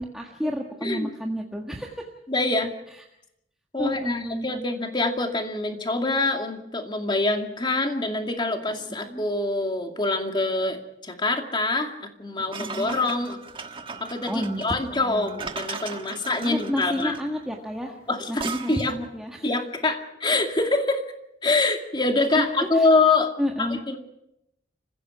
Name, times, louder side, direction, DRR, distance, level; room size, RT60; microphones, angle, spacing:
voice 1, 0.0-2.1 3.8-4.7 8.7-9.2 12.4-13.0 14.3-15.4 16.4-18.0 18.3-19.5 22.3-22.9 23.4-23.8, equal, 5° right, -1 dB, 1.6 m, -31 dB
voice 2, 2.3-2.7 3.7-13.4 14.0-17.2 18.1-18.9 19.4-21.0 21.4-23.3 23.6-24.0, left 3 dB, 25° left, 4 dB, 2.4 m, -25 dB
sound 1, 12.5-19.0, right 4 dB, 30° right, 1.4 m, -37 dB
29.0 x 16.0 x 5.8 m, 0.80 s
head